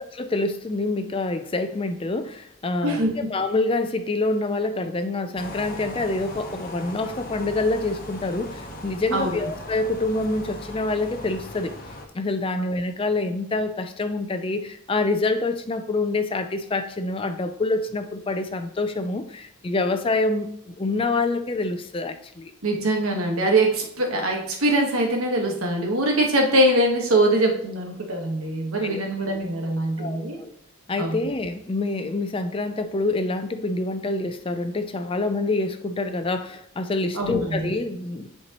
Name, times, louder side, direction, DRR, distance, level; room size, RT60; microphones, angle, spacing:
voice 1, 0.0-3.0 3.3-11.7 12.1-20.5 20.8-22.5 28.8-29.0 30.0-30.5 30.9-38.3, left 2 dB, 25° left, 9 dB, 0.4 m, -26 dB
voice 2, 2.8-3.3 9.1-9.4 22.6-30.4 31.0-31.2 37.1-37.7, right 1 dB, 80° right, 1 dB, 1.4 m, -23 dB
sound 1, 5.3-12.1, left 1 dB, 40° left, 1.0 m, -38 dB
10.0 x 4.5 x 3.0 m, 0.71 s
head